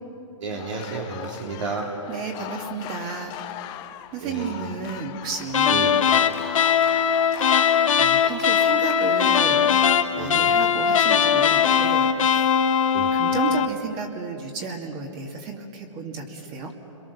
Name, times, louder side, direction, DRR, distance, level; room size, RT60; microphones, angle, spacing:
voice 1, 0.4-1.9 4.2-4.8 5.7-5.9 10.1-10.5 12.9-13.2, right 4 dB, 70° right, -1 dB, 3.3 m, -32 dB
sound 1, 0.6-9.1, left 13 dB, 25° left, 0.8 m, -39 dB
voice 2, 2.1-3.3 4.1-6.0 7.5-9.7 10.2-12.8 13.1-16.7, right 5 dB, 30° right, 2 dB, 2.3 m, -33 dB
sound 2, 5.5-13.8, left 7 dB, 80° left, 1.2 m, -20 dB
29.5 x 22.5 x 7.0 m, 2.9 s
hypercardioid pair, 150°, 17 cm